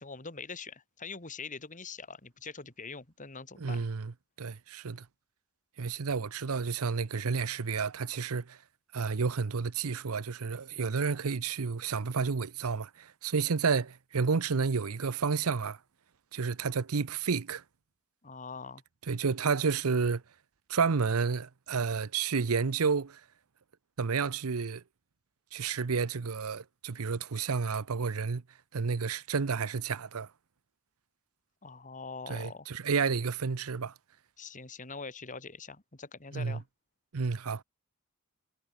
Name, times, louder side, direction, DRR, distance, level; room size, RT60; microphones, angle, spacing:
voice 1, 0.0-3.8 18.2-18.8 31.6-32.7 34.4-36.6, left 4 dB, 35° left, 2.5 m, -43 dB
voice 2, 3.6-4.1 4.4-5.1 5.8-8.6 8.9-15.8 16.3-17.6 19.1-20.2 20.7-23.2 24.0-24.8 25.5-28.4 28.7-30.3 32.3-33.9 36.3-36.6 37.1-37.6, right 5 dB, 75° right, 0.7 m, -30 dB
head